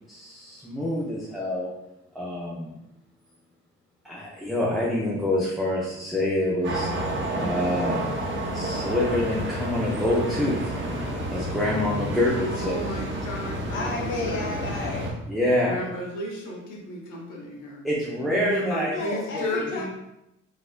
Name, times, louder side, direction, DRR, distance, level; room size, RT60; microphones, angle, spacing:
voice 1, 0.1-1.7 2.1-2.7 4.0-6.9 7.4-8.0 8.5-10.6 11.3-13.0 15.3-15.9 17.8-18.9 19.3-19.6, left 1 dB, ahead, -6 dB, 0.6 m, -26 dB
sound 1, 6.6-15.1, right 1 dB, 40° right, 0.9 m, -30 dB
voice 2, 12.4-14.5 15.7-17.8 18.2-19.9, equal, 85° left, -1 dB, 0.9 m, -34 dB
voice 3, 13.7-15.2 18.9-19.9, left 3 dB, 40° left, -2 dB, 0.6 m, -32 dB
4.1 x 2.5 x 2.4 m, 0.87 s
cardioid pair, 90°, 30 cm